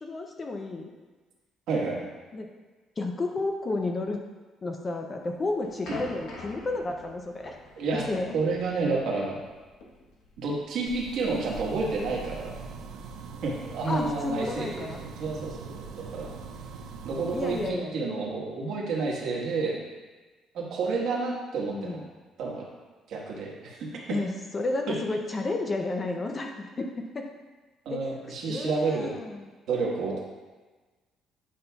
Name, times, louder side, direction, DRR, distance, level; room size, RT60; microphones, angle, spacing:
voice 1, 0.0-0.9 2.3-2.5 3.0-4.2 4.6-7.6 7.9-8.3 13.9-15.0 17.3-18.0 21.7-22.0 24.1-26.9 27.1-27.3 27.9-28.1 28.5-29.5, left 2 dB, 20° left, 3 dB, 0.4 m, -31 dB
voice 2, 1.7-2.1 5.9-6.0 7.8-8.1 8.3-9.4 10.4-12.6 13.4-16.3 17.0-19.8 20.5-22.0 22.4-22.6 23.1-23.9 24.9-25.0 27.8-29.2 29.7-30.2, right 3 dB, 60° right, -3 dB, 1.3 m, -30 dB
sound 1, 5.2-12.1, left 2 dB, 75° left, 1.2 m, -46 dB
sound 2, 10.9-17.7, right 4 dB, 80° right, 0.6 m, -42 dB
8.8 x 5.4 x 2.3 m, 1.3 s
cardioid pair, 175°, 0 cm